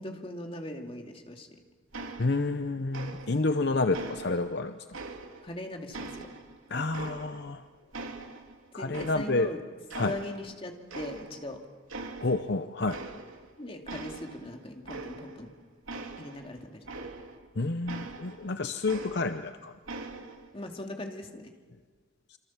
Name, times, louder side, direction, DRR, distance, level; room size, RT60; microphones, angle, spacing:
voice 1, 0.0-1.5 5.4-6.3 6.7-7.0 8.8-9.6 10.0-11.7 13.6-15.5 16.2-16.9 20.5-21.5, left 1 dB, 30° left, 3 dB, 2.5 m, -40 dB
sound 1, 1.9-2.6 2.9-3.6 3.9-5.6 5.9-7.6 7.9-9.5 9.9-10.6 10.9-11.5 11.9-12.5 12.8-13.5 13.9-17.5 17.9-19.5 19.9-20.5, right 3 dB, 90° right, 2.7 m, -42 dB
voice 2, 2.2-4.7 6.7-7.6 8.7-9.5 9.9-10.2 12.2-13.0 17.6-19.7, left 3 dB, 55° left, 9 dB, 0.8 m, -29 dB
27.5 x 25.5 x 7.3 m, 1.5 s
head